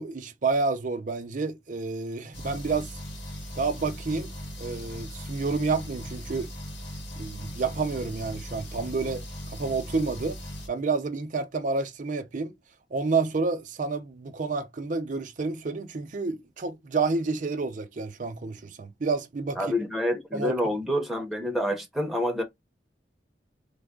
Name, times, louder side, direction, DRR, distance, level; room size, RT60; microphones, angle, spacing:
voice 1, 0.0-2.9 3.6-4.3 4.6-6.5 7.2-10.4 10.7-12.5 12.9-19.6 20.3-20.5, right 4 dB, 45° right, 0.5 m, -29 dB
sound 1, 2.3-10.7, equal, 90° left, 1.5 m, -38 dB
voice 2, 19.6-22.4, left 1 dB, ahead, 0.6 m, -27 dB
3.3 x 2.0 x 3.6 m
head